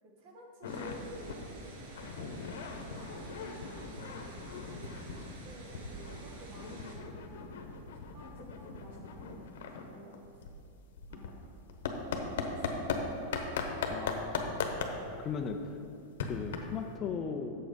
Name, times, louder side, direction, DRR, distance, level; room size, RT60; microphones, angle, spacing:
voice 1, 0.0-1.4 2.0-4.3 4.7-4.9 5.1-7.8 8.1-10.4 11.1-11.6 12.1-13.7, right 1 dB, 45° right, 0 dB, 1.7 m, -52 dB
sound 1, 0.6-1.0 1.3-1.5 1.8-5.4 5.7-13.0 13.3-16.9, left 6 dB, 80° left, 1.0 m, -39 dB
sound 2, 0.6-7.0, right 1 dB, 85° right, 2.1 m, -48 dB
voice 2, 13.9-14.6 15.2-15.8 16.2-17.6, left 6 dB, 25° left, 5 dB, 0.4 m, -37 dB
7.7 x 7.1 x 5.2 m, 2.6 s
supercardioid pair, 160°, 0 cm